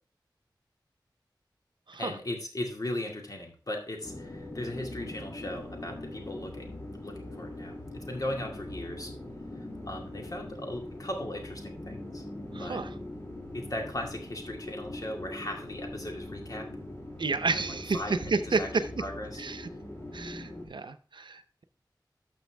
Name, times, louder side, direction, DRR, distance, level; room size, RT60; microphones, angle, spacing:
voice 1, 2.0-9.1 9.9-12.2 12.6-12.8 13.5-16.7 17.4-18.7 19.0-19.4, left 1 dB, 50° left, 2 dB, 2.2 m, -38 dB
sound 1, 4.0-20.7, left 1 dB, 35° left, 2.8 m, -42 dB
voice 2, 12.5-12.9 17.2-18.8 19.4-19.7 20.1-21.6, right 4 dB, 90° right, 10 dB, 0.6 m, -31 dB
12.5 x 6.0 x 3.4 m, 0.40 s
wide cardioid pair, 70°, 8 cm